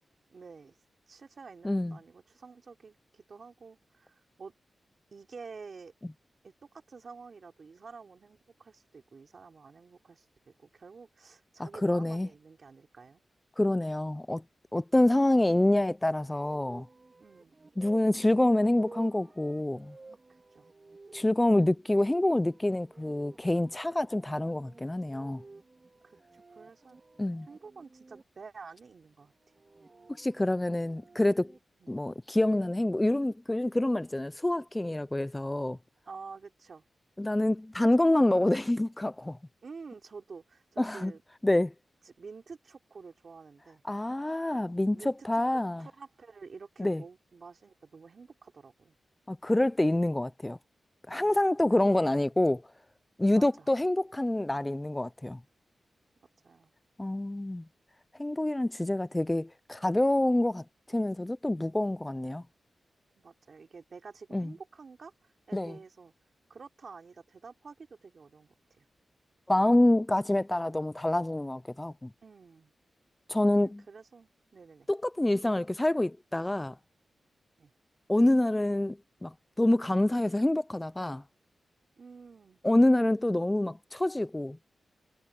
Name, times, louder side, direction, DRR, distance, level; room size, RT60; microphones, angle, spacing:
voice 1, 0.3-0.8 1.1-4.5 5.1-5.9 6.4-13.2 17.2-17.5 20.3-20.7 26.0-27.0 27.5-29.3 31.8-32.0 36.1-36.8 38.0-38.3 39.6-41.2 42.1-43.8 44.9-49.0 51.1-51.4 53.3-53.7 56.4-56.7 63.2-66.1 66.5-68.9 72.2-72.7 73.6-74.9 77.6-77.7 82.0-82.6, right 5 dB, 55° right, 3.7 m, -49 dB
voice 2, 1.6-2.0 11.6-12.3 13.6-14.4 14.7-16.9 17.8-19.9 21.1-25.4 27.2-27.5 30.2-31.5 31.9-35.8 37.2-39.4 40.8-41.1 41.4-41.7 43.9-45.9 46.8-47.0 49.3-50.6 51.1-52.6 53.2-55.4 57.0-57.6 58.2-62.4 64.3-64.5 65.5-65.8 69.5-72.1 73.3-73.8 74.9-76.8 78.1-81.2 82.6-84.6, left 1 dB, 15° left, 0.5 m, -27 dB
sound 1, 16.3-28.2 29.4-31.6, right 3 dB, 35° right, 3.7 m, -54 dB
wide cardioid pair, 110°, 0 cm